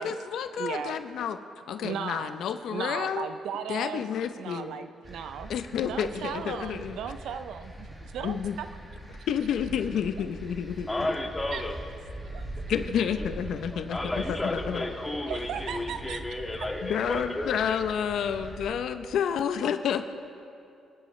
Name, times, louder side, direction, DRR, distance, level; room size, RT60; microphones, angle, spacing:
voice 1, 0.0-1.4 1.7-3.3 3.7-4.8 5.5-7.0 8.2-8.6 9.3-10.9 12.7-14.8 16.8-20.1, left 8 dB, 75° left, 9 dB, 0.7 m, -30 dB
voice 2, 0.6-1.0 1.8-2.4 2.7-4.0 4.4-5.5 5.8-8.7 11.5-11.6 12.2-12.4 15.3-16.2, right 8 dB, 80° right, 10 dB, 0.5 m, -36 dB
sound 1, 5.0-18.7, right 1 dB, 15° right, 2.0 m, -42 dB
voice 3, 10.9-11.7 13.0-13.3 13.9-17.6, left 1 dB, 15° left, 1 dB, 1.9 m, -32 dB
26.0 x 10.5 x 3.2 m, 2.6 s
cardioid pair, 90°, 0 cm